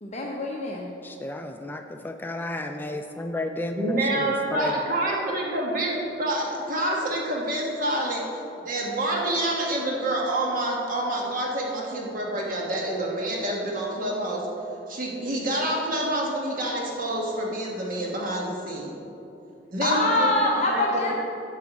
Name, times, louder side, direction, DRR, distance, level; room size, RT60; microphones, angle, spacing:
voice 1, 0.0-0.9 19.8-21.1, left 2 dB, 35° left, -2 dB, 0.8 m, -24 dB
voice 2, 1.0-4.7, left 1 dB, 10° left, 5 dB, 0.3 m, -32 dB
voice 3, 3.7-8.2 8.6-14.4 14.9-19.0 19.7-20.8, right 1 dB, 50° right, -2 dB, 1.4 m, -27 dB
10.0 x 4.8 x 7.1 m, 2.8 s
head